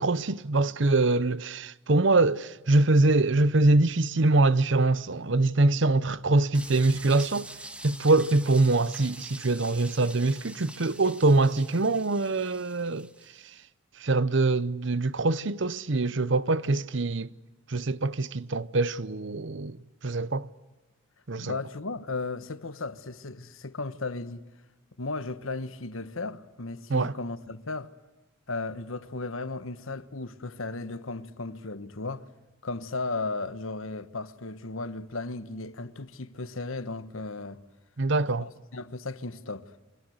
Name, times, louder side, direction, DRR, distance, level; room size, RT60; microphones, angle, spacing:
voice 1, 0.0-7.5 7.8-13.1 14.0-17.3 17.7-19.8 20.0-20.5 21.3-21.6 26.9-27.1 38.0-38.5, right 2 dB, 65° right, 0.8 m, -24 dB
sound 1, 6.5-13.4, right 1 dB, 5° right, 1.3 m, -45 dB
voice 2, 21.4-24.4 25.0-27.9 28.5-32.3 32.6-37.6 38.4-39.7, left 3 dB, 85° left, 1.3 m, -35 dB
28.0 x 25.0 x 8.0 m
head